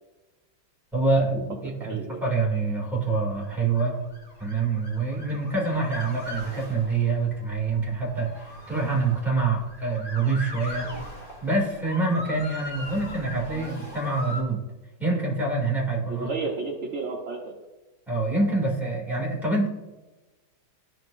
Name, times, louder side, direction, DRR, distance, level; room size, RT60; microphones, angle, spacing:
voice 1, 0.9-4.0 4.4-10.9 11.4-14.6 15.0-16.3 18.1-19.7, right 3 dB, ahead, -4 dB, 2.1 m, -26 dB
voice 2, 1.5-2.2 16.1-17.5, right 4 dB, 50° right, 0 dB, 0.9 m, -32 dB
Motor vehicle (road) / Siren, 3.3-14.4, equal, 20° left, 2.0 m, -40 dB
13.5 x 4.6 x 2.6 m, 1.1 s
omnidirectional pair, 2.2 m